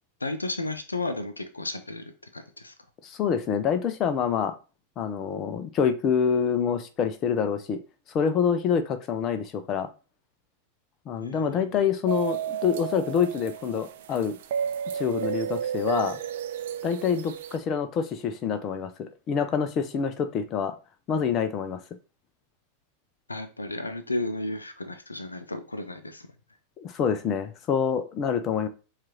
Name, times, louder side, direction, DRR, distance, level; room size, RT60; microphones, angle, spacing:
voice 1, 0.2-2.7 11.2-11.9 23.3-26.2, left 2 dB, 80° left, 10 dB, 0.5 m, -33 dB
voice 2, 3.0-4.5 5.0-7.8 8.1-9.9 11.1-14.4 14.9-16.2 16.8-20.7 21.1-21.8 26.8-28.7, left 7 dB, 30° left, 9 dB, 0.5 m, -26 dB
sound 1, 12.1-17.6, right 9 dB, 55° right, 0.5 m, -32 dB
7.3 x 2.5 x 2.9 m, 0.33 s
figure-of-eight pair, 90°, 0 cm